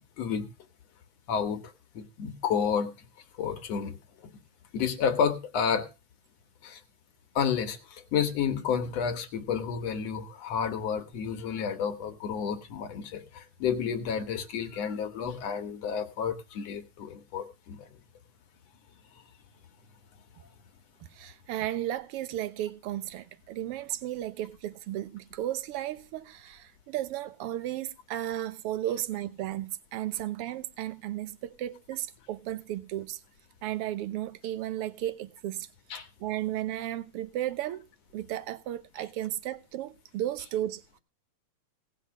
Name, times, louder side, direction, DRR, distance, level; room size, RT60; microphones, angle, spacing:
voice 1, 1.3-2.9 3.4-4.0 4.7-5.9 6.6-6.8 7.4-17.9 35.9-36.1, left 7 dB, 65° left, 2.3 m, -30 dB
voice 2, 21.1-33.2 33.6-35.7 35.9-37.8 38.1-41.0, right 13 dB, 65° right, 1.5 m, -34 dB
18.0 x 6.0 x 6.4 m
omnidirectional pair, 3.4 m